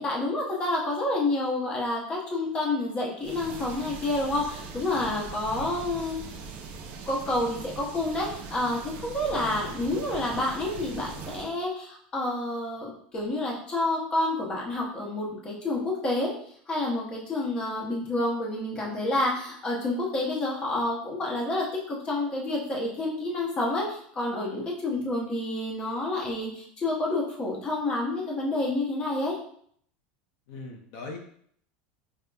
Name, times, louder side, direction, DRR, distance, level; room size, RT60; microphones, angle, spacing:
voice 1, 0.0-6.2 7.1-16.3 16.7-29.4, left 2 dB, 20° left, -3 dB, 0.7 m, -29 dB
sound 1, 3.2-11.5, right 5 dB, 40° right, 0.5 m, -41 dB
voice 2, 9.3-9.7 30.5-31.2, left 3 dB, 60° left, 0 dB, 0.6 m, -41 dB
5.1 x 2.1 x 2.2 m, 0.63 s
supercardioid pair, 160°, 5 cm